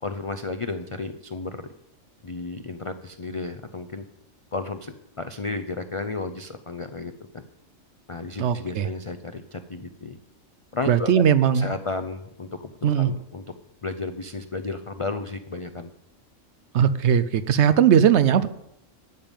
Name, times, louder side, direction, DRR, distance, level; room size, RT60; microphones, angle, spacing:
voice 1, 0.0-1.6 2.2-4.0 4.5-7.4 8.1-10.2 10.7-11.2 11.5-12.7 13.0-13.4 13.8-15.9, left 3 dB, 50° left, 8 dB, 0.3 m, -33 dB
voice 2, 8.4-8.9 10.9-11.7 12.8-13.1 16.7-18.5, right 8 dB, 65° right, 13 dB, 0.8 m, -19 dB
12.0 x 5.3 x 8.9 m, 0.78 s
omnidirectional pair, 1.4 m